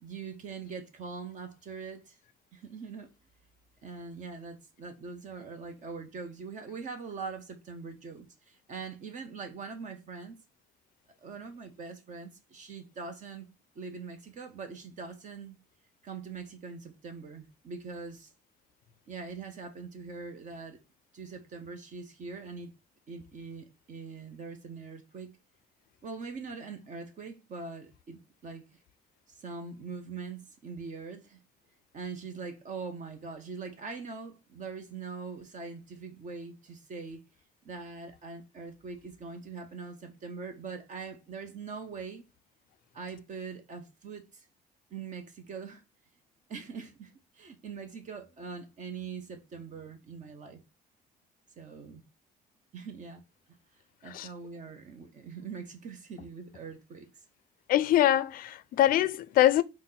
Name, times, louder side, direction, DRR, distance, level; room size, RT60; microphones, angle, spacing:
voice 1, 0.0-2.2 2.5-3.1 3.8-10.4 11.2-15.6 16.0-18.3 19.1-20.8 21.1-22.7 23.1-25.4 26.0-28.6 29.3-31.4 31.9-37.2 37.6-42.2 42.9-44.5 44.9-45.8 46.5-50.6 51.6-52.1 52.7-53.2 54.0-57.2, right 5 dB, 50° right, 0.7 m, -42 dB
voice 2, 57.7-59.6, left 13 dB, 60° left, 0.4 m, -24 dB
4.0 x 2.1 x 3.8 m
cardioid pair, 110°, 17 cm